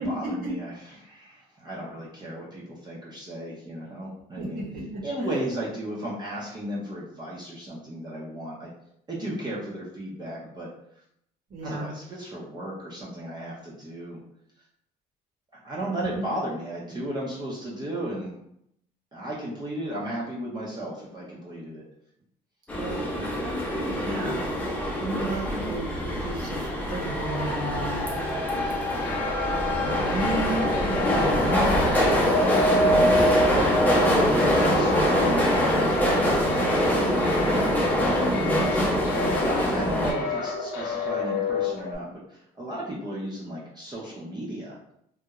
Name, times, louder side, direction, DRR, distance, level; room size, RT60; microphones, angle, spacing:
voice 1, 0.0-4.6 5.0-8.7 9.1-10.7 11.6-14.2 15.6-18.4 19.1-21.8 30.9-31.2 33.5-36.6 37.4-37.8 38.1-39.0 39.4-44.9, right 1 dB, 25° right, -5 dB, 0.6 m, -35 dB
voice 2, 4.3-5.4 11.5-11.9 15.8-16.2 22.7-24.4 25.0-28.0 29.8-31.9, right 2 dB, 60° right, -3 dB, 1.1 m, -33 dB
sound 1, 22.7-40.1, equal, 10° left, 0.6 m, -24 dB
sound 2, 29.0-41.9, left 1 dB, 75° left, 0.5 m, -29 dB
2.4 x 2.1 x 2.9 m, 0.74 s
cardioid pair, 110°, 17 cm